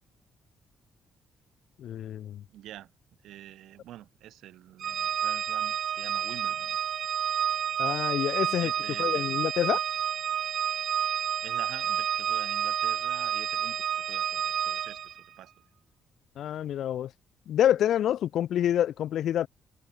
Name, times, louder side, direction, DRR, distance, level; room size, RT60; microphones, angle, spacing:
voice 1, 1.8-2.4 7.8-8.7 9.0-9.8 16.4-17.1 17.5-19.5, left 11 dB, 70° left, 0.9 m, -27 dB
voice 2, 2.5-2.9 3.2-6.8 8.6-9.4 11.4-15.5, right 13 dB, 80° right, 3.8 m, -47 dB
Organ, 4.8-15.2, right 9 dB, 65° right, 0.6 m, -30 dB
cardioid pair, 90°, 0 cm